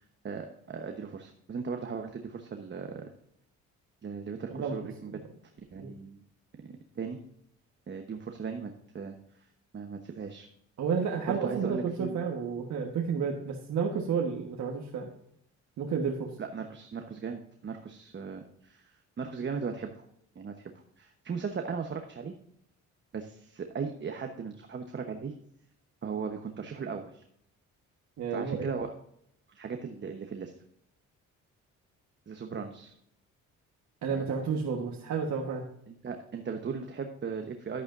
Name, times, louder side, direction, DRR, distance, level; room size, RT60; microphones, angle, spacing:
voice 1, 0.0-3.1 4.0-5.2 5.7-6.2 7.0-7.2 7.9-9.5 9.7-10.5 11.3-12.2 16.4-20.1 20.3-20.7 21.0-22.3 23.1-25.3 26.0-27.2 28.3-28.9 29.6-30.5 32.3-32.9 34.1-34.3 35.9-37.8, right 5 dB, 40° right, 4 dB, 1.1 m, -37 dB
voice 2, 10.8-15.1 15.8-16.3 28.2-28.7 34.0-35.6, right 6 dB, 65° right, 0 dB, 1.4 m, -31 dB
11.0 x 8.6 x 2.6 m, 0.71 s
cardioid pair, 90°, 30 cm